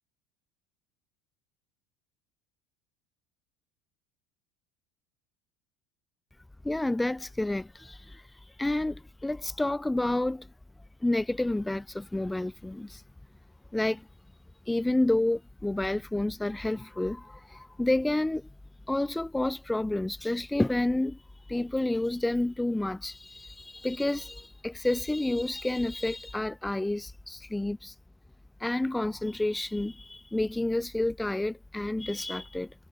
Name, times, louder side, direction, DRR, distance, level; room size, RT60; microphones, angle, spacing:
voice 1, 6.6-8.2 8.6-10.5 11.0-13.0 13.7-14.1 14.7-18.5 18.9-21.2 21.5-27.9 28.6-32.7, left 1 dB, 10° left, 0.5 m, -29 dB
figure-of-eight pair, 70°, 0 cm